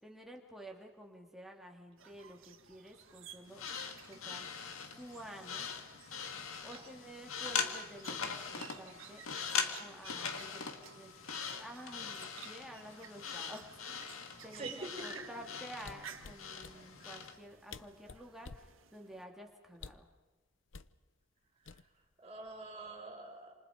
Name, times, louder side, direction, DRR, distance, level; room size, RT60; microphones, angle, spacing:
voice 1, 0.0-3.6 4.1-4.5 4.8-5.7 6.3-9.2 9.7-11.1 11.5-20.1, equal, ahead, 1 dB, 2.7 m, -51 dB
sound 1, 2.0-19.2, right 7 dB, 70° right, 1.7 m, -55 dB
sound 2, 3.5-17.4, left 6 dB, 85° left, 2.2 m, -41 dB
voice 2, 14.5-15.2 21.6-21.8 22.2-23.5, right 2 dB, 30° right, 2 dB, 5.0 m, -46 dB
sound 3, 15.8-16.8 17.4-17.5 17.7-18.7 19.7-20.1 20.7-20.9 21.7-22.1 22.5-22.7, left 4 dB, 65° left, 0.8 m, -50 dB
29.0 x 27.5 x 5.2 m, 1.2 s
head